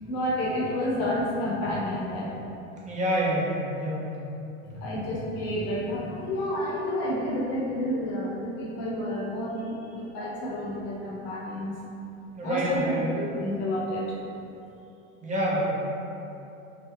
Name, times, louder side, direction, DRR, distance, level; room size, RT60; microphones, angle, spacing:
voice 1, 0.0-2.4 4.6-11.7 12.4-14.0, left 1 dB, 50° left, -5 dB, 1.0 m, -30 dB
voice 2, 2.8-4.0 12.4-13.0 15.2-15.7, right 1 dB, 15° right, -6 dB, 0.7 m, -27 dB
3.3 x 2.2 x 2.9 m, 2.8 s
hypercardioid pair, 95°, 42 cm